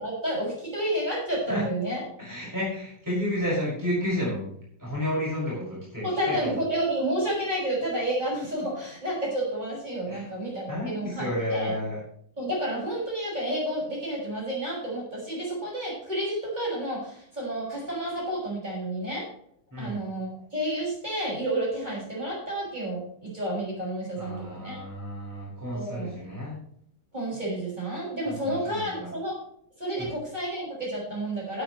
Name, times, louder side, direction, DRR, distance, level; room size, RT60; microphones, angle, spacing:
voice 1, 0.0-2.0 6.0-11.7 12.4-19.3 19.8-24.8 25.7-26.1 27.1-29.4 29.8-31.6, right 1 dB, 25° right, -6 dB, 6.5 m, -30 dB
voice 2, 2.2-4.5 4.8-6.6 10.1-10.2 10.7-12.0 19.7-20.0 24.2-26.6 28.3-29.1 30.0-30.1, left 1 dB, 10° right, -6 dB, 6.0 m, -31 dB
18.5 x 9.0 x 3.2 m, 0.66 s
omnidirectional pair, 1.8 m